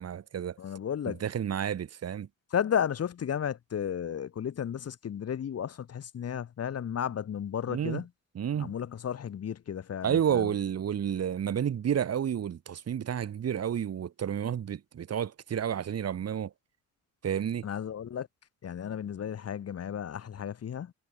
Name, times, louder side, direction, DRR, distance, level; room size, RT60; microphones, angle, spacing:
voice 1, 0.0-0.6 1.1-2.3 7.7-8.0 8.3-8.7 10.0-16.5 17.2-17.7, right 9 dB, 55° right, 2.7 m, -30 dB
voice 2, 0.6-1.2 2.5-8.1 8.5-10.5 17.6-18.3 18.6-20.9, left 8 dB, 55° left, 2.7 m, -33 dB
cardioid pair, 90°, 30 cm